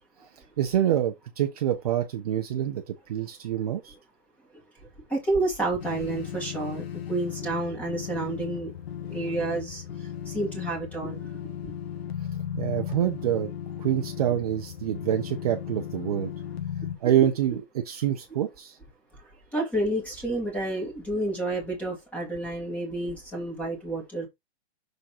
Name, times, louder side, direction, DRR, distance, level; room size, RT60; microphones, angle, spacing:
voice 1, 0.6-3.9 12.5-13.5 13.8-16.3 17.0-18.8, right 11 dB, 35° right, 0.8 m, -26 dB
voice 2, 5.1-6.8 7.1-8.7 9.1-9.8 10.3-11.2 11.6-11.7 19.5-24.3, right 2 dB, 5° left, 2.0 m, -29 dB
sound 1, 5.8-17.0, left 9 dB, 65° left, 1.6 m, -36 dB
6.5 x 3.7 x 4.2 m
hypercardioid pair, 170°, 33 cm